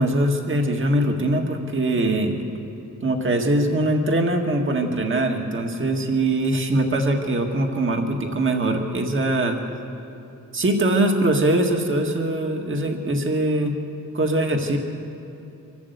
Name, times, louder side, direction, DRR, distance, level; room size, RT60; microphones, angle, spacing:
voice 1, 0.0-2.4 3.0-9.6 10.5-13.8 14.1-14.8, right 1 dB, 35° right, 3 dB, 1.9 m, -22 dB
25.5 x 12.5 x 8.3 m, 2.7 s
wide cardioid pair, 115°, 33 cm